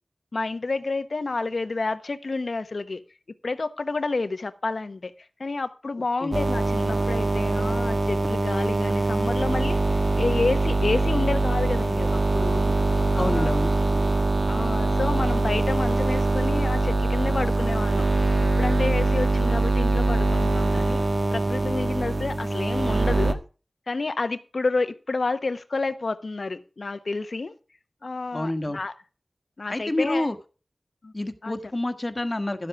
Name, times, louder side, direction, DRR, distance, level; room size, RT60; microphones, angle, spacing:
voice 1, 0.3-3.0 3.4-5.1 5.4-12.7 13.1-13.6 14.5-18.2 18.6-21.0 21.3-23.4 23.9-27.5 28.0-28.9 29.6-30.3 31.0-31.1 31.4-31.5, left 3 dB, 70° left, 1.0 m, -29 dB
sound 1, 6.3-23.3, right 2 dB, 60° right, 1.3 m, -23 dB
voice 2, 13.0-13.7 28.3-28.8 29.7-30.3 31.1-32.7, left 1 dB, 35° left, 1.4 m, -28 dB
12.0 x 7.8 x 4.7 m
wide cardioid pair, 55°, 0 cm